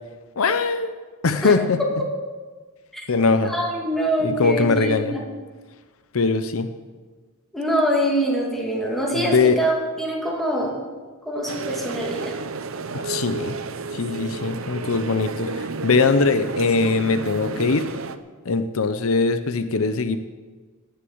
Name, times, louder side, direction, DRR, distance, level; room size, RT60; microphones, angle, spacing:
voice 1, 0.4-0.9 1.2-1.8 3.1-3.5 4.2-5.2 6.1-6.7 9.1-9.6 12.9-13.6 13.9-17.9 18.5-20.2, left 4 dB, 75° left, 10 dB, 0.7 m, -21 dB
voice 2, 3.4-5.3 7.5-10.9 11.2-12.3, right 1 dB, ahead, -3 dB, 2.4 m, -24 dB
sound 1, 11.5-18.2, right 4 dB, 65° right, 0.7 m, -31 dB
17.5 x 6.8 x 7.8 m, 1.4 s
head